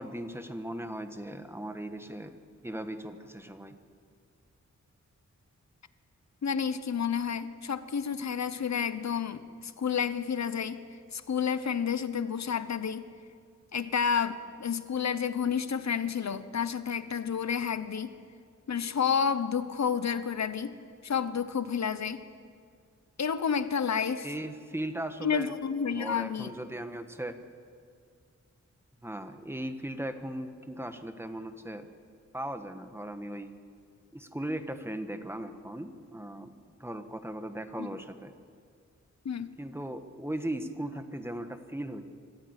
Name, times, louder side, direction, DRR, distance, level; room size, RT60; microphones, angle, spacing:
voice 1, 0.0-2.4 2.6-3.8 24.2-25.5 25.9-27.4 29.0-31.9 32.3-33.5 34.1-36.5 36.8-38.3 39.6-42.0, right 1 dB, 10° right, 8 dB, 1.5 m, -38 dB
voice 2, 6.4-10.8 11.1-13.1 13.7-18.1 18.7-20.7 21.0-22.2 23.2-24.3 25.2-26.5 37.8-37.9 39.2-39.5, left 7 dB, 70° left, 12 dB, 1.0 m, -30 dB
25.0 x 14.5 x 8.3 m, 2.2 s
wide cardioid pair, 90°, 29 cm